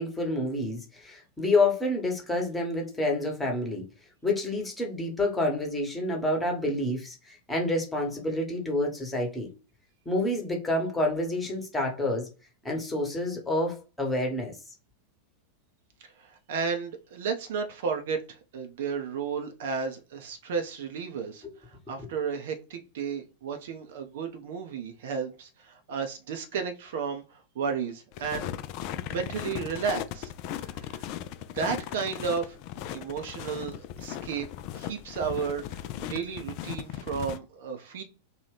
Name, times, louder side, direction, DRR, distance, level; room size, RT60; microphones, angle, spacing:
voice 1, 0.0-3.8 4.2-9.5 10.0-12.3 12.6-14.6 22.0-22.1, left 2 dB, 10° left, 1.1 m, -28 dB
voice 2, 16.0-21.4 21.9-28.5 29.1-31.0 31.5-32.6 32.9-34.5 34.7-38.0, right 6 dB, 55° right, 0.5 m, -33 dB
sound 1, 28.1-37.4, left 11 dB, 45° left, 0.3 m, -37 dB
2.9 x 2.3 x 3.3 m
figure-of-eight pair, 90°, 0 cm